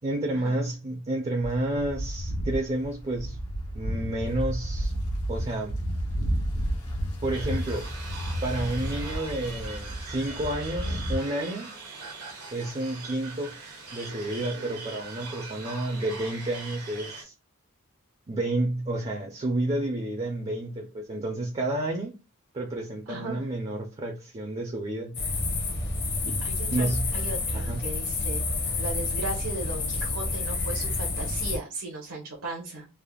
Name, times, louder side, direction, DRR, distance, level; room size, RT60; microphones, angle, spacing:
voice 1, 0.0-3.4 3.7-4.9 5.3-5.7 7.2-8.0 8.4-11.7 12.5-13.5 13.9-17.3 18.3-22.2 22.5-25.2 26.3-26.4 26.7-27.1 27.5-27.8, right 1 dB, 25° right, 0.4 m, -30 dB
sound 1, 1.4-11.2, equal, 85° left, 0.9 m, -31 dB
sound 2, 7.3-17.2, right 3 dB, 90° right, 1.1 m, -41 dB
voice 2, 23.1-23.5 26.4-28.5 28.8-32.9, right 2 dB, 70° right, 0.8 m, -36 dB
sound 3, 25.1-31.6, left 3 dB, 45° left, 0.7 m, -29 dB
3.3 x 2.0 x 2.2 m
head